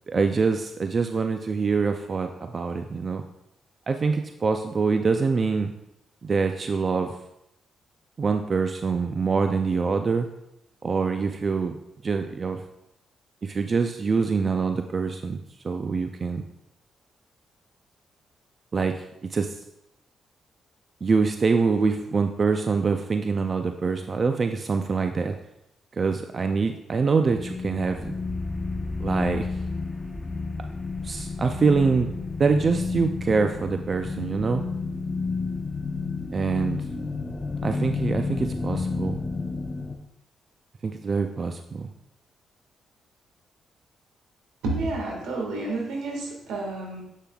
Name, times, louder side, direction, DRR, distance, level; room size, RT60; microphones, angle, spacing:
voice 1, 0.1-3.2 3.9-5.7 6.2-7.2 8.2-10.3 10.8-11.8 12.0-12.6 13.4-15.4 15.6-16.4 18.7-19.0 19.3-19.6 21.0-25.3 26.0-28.1 29.0-29.5 31.0-34.6 36.3-36.8 37.6-39.2 40.8-41.9, right 4 dB, 45° right, 6 dB, 0.4 m, -25 dB
sound 1, 27.2-40.0, left 4 dB, 30° left, 0.8 m, -31 dB
voice 2, 44.6-47.0, right 2 dB, 90° right, 0 dB, 1.7 m, -30 dB
7.4 x 6.8 x 2.3 m, 0.84 s
cardioid pair, 70°, 0 cm